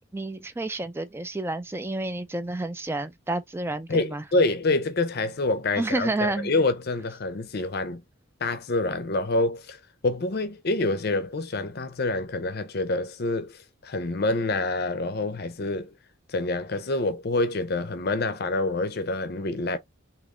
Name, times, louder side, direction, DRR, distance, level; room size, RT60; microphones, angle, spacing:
voice 1, 0.0-4.2 5.8-6.5, right 2 dB, 10° right, 0.3 m, -30 dB
voice 2, 3.9-8.0 8.4-15.9 16.3-19.8, left 2 dB, 45° left, 0.6 m, -27 dB
3.7 x 2.9 x 3.1 m
head